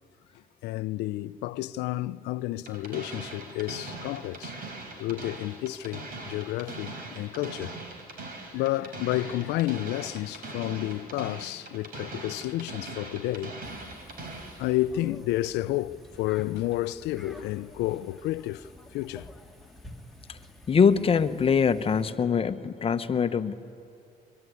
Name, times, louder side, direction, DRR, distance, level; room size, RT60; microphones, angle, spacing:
voice 1, 0.6-4.6 5.0-7.7 8.5-13.5 14.6-19.3, left 16 dB, 85° left, 0.6 m, -31 dB
sound 1, 2.7-14.6, right 2 dB, 60° right, 5.0 m, -41 dB
sound 2, 13.6-22.1, left 1 dB, ahead, 2.1 m, -49 dB
voice 2, 20.7-23.5, left 6 dB, 35° left, 1.1 m, -23 dB
24.0 x 23.0 x 9.6 m
cardioid pair, 110°, 17 cm